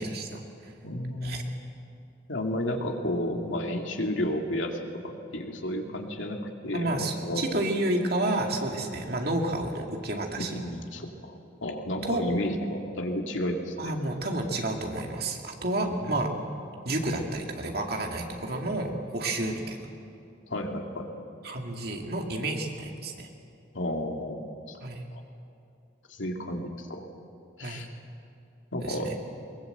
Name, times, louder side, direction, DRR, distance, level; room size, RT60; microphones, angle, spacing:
voice 1, 0.0-0.7 1.2-1.4 6.7-10.6 12.0-12.2 13.8-16.3 16.8-19.8 21.4-23.3 24.8-25.1 27.6-27.8 28.8-29.1, right 1 dB, 55° right, 2 dB, 2.3 m, -30 dB
voice 2, 0.8-1.5 2.3-7.5 10.4-13.9 15.9-16.1 20.5-21.1 23.7-24.8 25.1-25.2 26.1-27.1 27.6-27.9 28.7-29.2, left 1 dB, 85° left, 2 dB, 2.4 m, -32 dB
22.0 x 20.5 x 8.0 m, 2.6 s
head